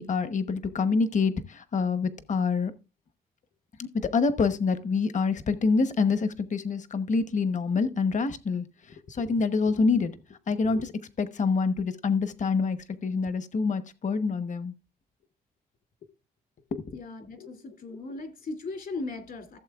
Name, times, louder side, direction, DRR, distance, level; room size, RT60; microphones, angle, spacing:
voice 1, 0.0-2.7 3.8-10.9 11.2-14.7 16.7-17.0 17.4-17.5, left 4 dB, 50° left, 1.0 m, -26 dB
voice 2, 16.9-19.6, left 3 dB, 65° left, 2.6 m, -38 dB
15.5 x 7.4 x 2.4 m
cardioid pair, 95°, 16 cm